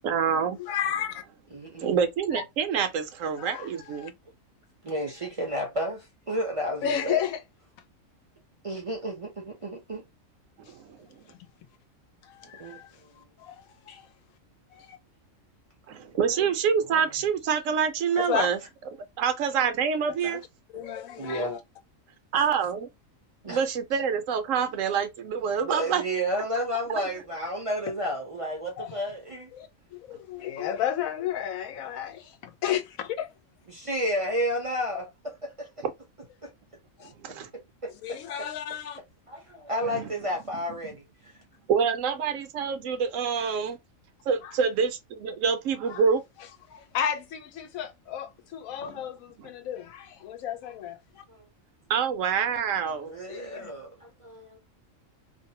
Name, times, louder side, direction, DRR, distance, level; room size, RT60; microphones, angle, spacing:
voice 1, 0.0-0.6 1.8-4.1 10.7-11.0 15.9-18.6 19.2-20.4 22.3-22.9 23.5-26.0 37.0-37.5 39.8-40.1 41.7-43.8 44.3-46.2 48.9-49.0 49.4-49.5 51.9-53.1, right 6 dB, 75° right, 0.9 m, -26 dB
voice 2, 0.5-1.2 2.3-2.4 3.4-4.1 6.8-7.4 12.2-12.9 13.4-14.1 14.7-15.0 18.1-18.5 20.2-20.4 20.7-21.6 28.8-28.9 29.5-33.3 37.0-37.1 38.0-39.0 43.3-43.5 44.4-44.5 45.9-46.0 46.7-51.0 53.3-53.7, left 9 dB, 85° left, 1.0 m, -33 dB
voice 3, 1.5-1.9 4.8-7.2 8.6-10.1 12.6-13.2 16.2-16.5 16.8-17.1 21.2-21.5 23.4-23.6 23.9-24.0 25.6-29.5 30.4-30.5 33.7-35.8 36.4-36.5 37.8-38.5 39.3-41.4 51.3-51.4 53.0-54.6, equal, 40° right, 0.5 m, -32 dB
2.6 x 2.0 x 2.7 m
omnidirectional pair, 1.4 m